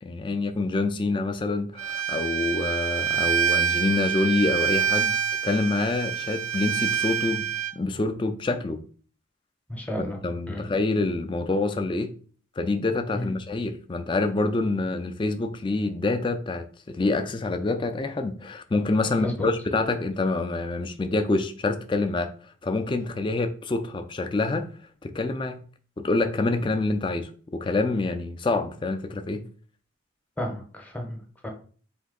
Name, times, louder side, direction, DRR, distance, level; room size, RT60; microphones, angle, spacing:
voice 1, 0.0-5.2 5.4-8.8 10.0-12.1 12.6-22.3 22.6-24.7 25.0-25.6 26.0-29.4, left 3 dB, 25° left, 0.3 m, -26 dB
Bowed string instrument, 1.8-7.7, right 7 dB, 80° right, 0.3 m, -26 dB
voice 2, 9.7-10.2 10.5-10.7 13.1-13.3 19.1-19.5 30.4-31.5, left 1 dB, 5° left, 0.7 m, -32 dB
4.2 x 2.7 x 3.8 m
head